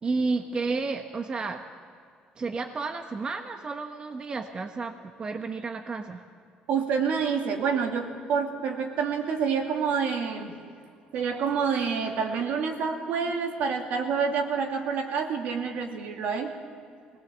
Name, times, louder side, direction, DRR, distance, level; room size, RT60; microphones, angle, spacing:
voice 1, 0.0-1.6 2.4-6.2, right 4 dB, 35° right, 5 dB, 1.1 m, -31 dB
voice 2, 6.7-10.5 11.1-16.5, right 6 dB, 70° right, 2 dB, 2.5 m, -28 dB
20.0 x 18.5 x 7.4 m, 2.3 s
cardioid pair, 100°, 3 cm